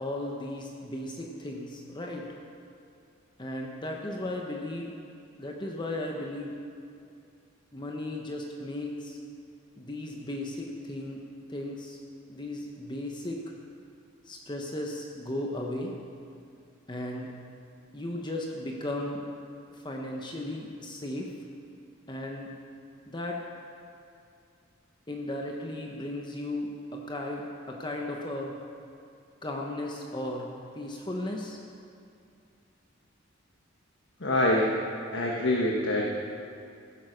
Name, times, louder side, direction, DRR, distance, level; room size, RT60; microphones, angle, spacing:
voice 1, 0.0-2.4 3.4-4.9 5.4-6.6 7.7-9.2 9.8-11.2 11.5-12.0 12.3-13.5 14.3-15.9 16.9-17.3 17.9-19.3 19.7-21.4 22.1-22.5 23.1-23.4 25.1-28.6 29.4-31.6, left 1 dB, 20° left, 0 dB, 1.0 m, -35 dB
voice 2, 34.2-34.7 35.1-36.0, left 1 dB, 60° left, -1 dB, 1.3 m, -25 dB
15.5 x 8.9 x 6.4 m, 2.5 s
head